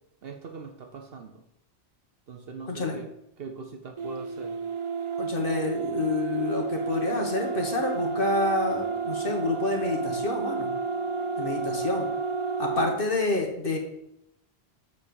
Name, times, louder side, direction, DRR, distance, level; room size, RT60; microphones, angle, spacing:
voice 1, 0.2-1.4 2.3-3.1 3.4-4.6, right 5 dB, 65° right, 4 dB, 1.0 m, -41 dB
voice 2, 2.6-3.0 5.2-10.7 11.4-12.1 12.6-13.8, left 3 dB, 55° left, 2 dB, 1.5 m, -28 dB
sound 1, 4.0-13.0, right 5 dB, 40° right, 0.5 m, -31 dB
8.0 x 4.2 x 6.8 m, 0.78 s
omnidirectional pair, 1.1 m